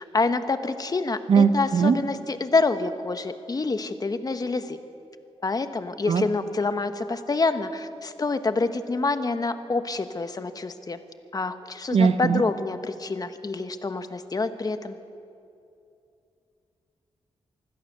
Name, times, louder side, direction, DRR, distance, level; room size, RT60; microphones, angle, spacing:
voice 1, 0.0-4.8 5.4-11.0 11.3-15.0, left 3 dB, 35° left, 9 dB, 1.2 m, -27 dB
voice 2, 1.3-2.0 6.1-6.2 11.9-12.4, right 6 dB, 65° right, 10 dB, 1.1 m, -19 dB
25.0 x 16.0 x 6.7 m, 2.6 s
cardioid pair, 90°, 11 cm